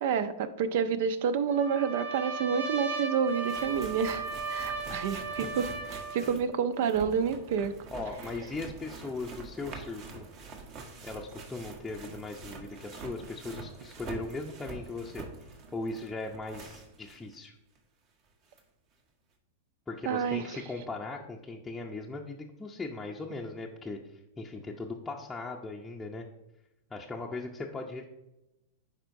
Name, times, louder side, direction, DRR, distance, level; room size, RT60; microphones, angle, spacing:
voice 1, 0.0-7.7 20.0-20.4, right 7 dB, 65° right, 12 dB, 0.6 m, -29 dB
Trumpet, 1.5-6.3, right 4 dB, 90° right, 1.7 m, -36 dB
sound 1, 3.0-3.1 3.3-17.4 17.8-17.9 18.6-18.7, right 3 dB, 45° right, 1.3 m, -46 dB
voice 2, 4.9-5.5 6.2-6.4 7.9-10.3 11.0-15.2 15.7-17.5 19.9-26.3 26.9-28.1, left 3 dB, 10° left, -2 dB, 0.6 m, -39 dB
10.0 x 4.3 x 2.7 m, 0.94 s
hypercardioid pair, 115°, 0 cm